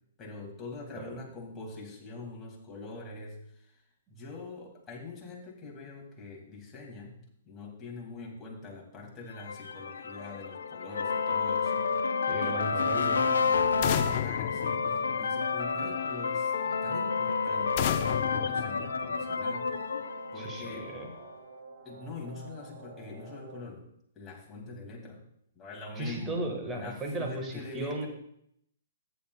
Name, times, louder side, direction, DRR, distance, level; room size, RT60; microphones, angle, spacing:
voice 1, 0.2-3.8 4.1-7.2 7.5-11.9 12.4-16.5 16.8-19.9 20.3-20.9 21.8-23.8 24.2-25.2 25.6-26.4 26.7-28.1, left 3 dB, 15° left, -3 dB, 2.2 m, -44 dB
sound 1, 9.4-21.2, left 5 dB, 90° left, 0.7 m, -30 dB
voice 2, 12.3-13.3 15.7-15.9 16.6-16.8 20.3-21.1 26.0-28.1, right 2 dB, 15° right, 2 dB, 1.4 m, -36 dB
sound 2, 13.8-15.6 17.8-19.5, left 12 dB, 35° left, 0.5 m, -33 dB
sound 3, 17.6-23.6, right 4 dB, 60° right, 2.0 m, -49 dB
14.0 x 9.4 x 2.3 m, 0.73 s
hypercardioid pair, 155°, 0 cm